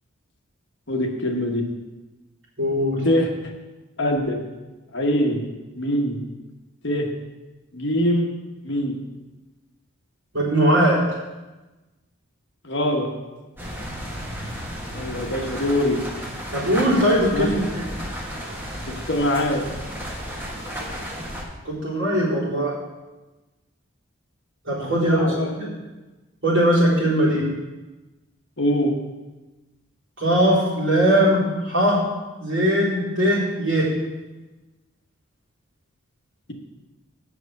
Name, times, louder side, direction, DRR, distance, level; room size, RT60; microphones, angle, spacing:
voice 1, 0.9-1.6 3.0-3.3 4.0-4.4 4.9-5.4 5.7-6.2 6.8-7.1 7.7-8.3 8.6-9.0 12.6-13.1 14.9-16.0 17.3-17.6 18.9-19.6 24.8-25.7 28.6-28.9, equal, 55° left, 2 dB, 1.2 m, -23 dB
voice 2, 2.6-3.0 10.3-11.0 16.5-17.8 21.6-22.7 24.7-25.3 25.6-25.7 26.4-27.4 30.2-32.0 32.4-33.9, equal, 60° right, -7 dB, 3.8 m, -20 dB
sound 1, 13.6-21.4, equal, 10° right, 1.3 m, -33 dB
7.7 x 6.7 x 6.4 m, 1.1 s
head